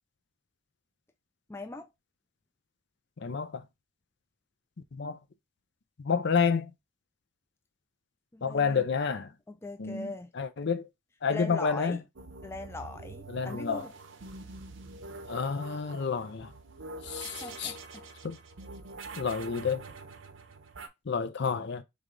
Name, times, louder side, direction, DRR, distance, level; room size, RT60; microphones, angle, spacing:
voice 1, 1.5-1.9 8.3-8.8 9.5-10.3 11.3-12.0 12.4-13.9 17.2-18.1, left 2 dB, 15° left, 0.4 m, -40 dB
voice 2, 3.2-3.6 4.9-5.2 6.0-6.7 8.4-9.3 9.8-10.9 11.2-12.0 13.3-13.8 15.3-16.5 17.0-17.7 18.2-18.4 19.2-19.8 21.1-21.8, left 5 dB, 60° left, 0.6 m, -29 dB
sound 1, 12.2-20.9, right 3 dB, 70° right, 0.7 m, -45 dB
3.4 x 3.4 x 3.8 m
head